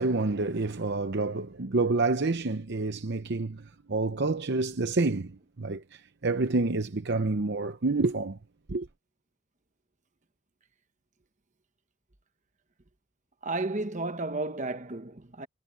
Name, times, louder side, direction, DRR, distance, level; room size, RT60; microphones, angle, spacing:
voice 1, 0.0-8.4 8.7-8.9, right 3 dB, 50° right, 0.8 m, -28 dB
voice 2, 13.4-15.5, right 2 dB, 35° right, 1.1 m, -32 dB
head